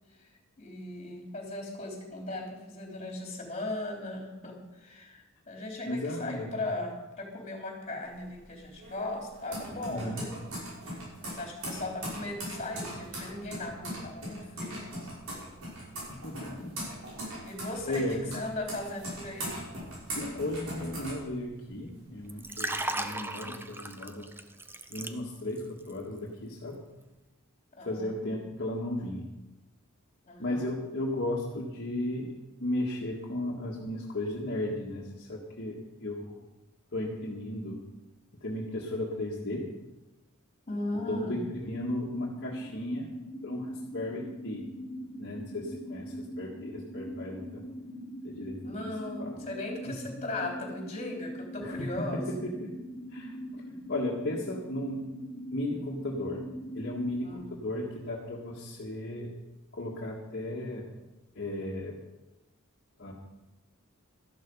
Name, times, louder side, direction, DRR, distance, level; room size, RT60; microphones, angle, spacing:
voice 1, 0.6-10.4 11.2-14.8 17.4-19.6 27.7-28.4 30.3-30.7 40.7-41.4 48.6-52.2 57.2-57.5, left 2 dB, 35° left, 1 dB, 3.6 m, -38 dB
voice 2, 5.8-6.6 9.9-10.2 16.1-16.9 17.9-18.3 20.2-24.3 24.9-26.8 27.9-29.3 30.4-36.4 36.9-37.8 38.3-39.7 40.9-43.1 43.4-44.7 45.2-47.6 48.2-48.8 49.2-49.4 49.9-50.1 51.6-52.8 53.1-53.6 53.9-55.1 55.5-56.4 56.7-59.4 59.7-60.9 61.4-62.0 63.0-63.1, left 1 dB, 55° left, -3 dB, 1.9 m, -35 dB
sound 1, 8.0-21.9 22.3-23.1, right 1 dB, 80° right, 6.1 m, -40 dB
Liquid, 22.3-25.6 25.9-26.2, right 2 dB, 10° right, 0.7 m, -36 dB
sound 2, 41.6-57.3, equal, 15° left, 1.5 m, -42 dB
13.0 x 12.0 x 5.5 m, 1.1 s
head